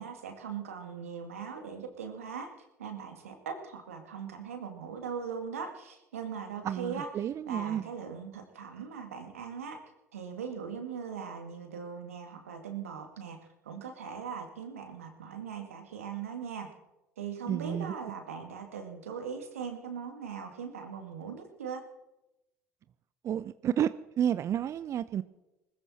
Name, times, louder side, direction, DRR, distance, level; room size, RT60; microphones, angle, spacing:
voice 1, 0.0-2.5 2.8-9.8 10.1-16.7 17.2-21.8, right 6 dB, 85° right, 5 dB, 2.1 m, -40 dB
voice 2, 6.6-7.9 17.5-17.9 23.2-23.9 24.2-25.2, right 10 dB, 40° right, 15 dB, 0.5 m, -30 dB
20.5 x 14.0 x 4.3 m, 0.98 s
hypercardioid pair, 70°, 7 cm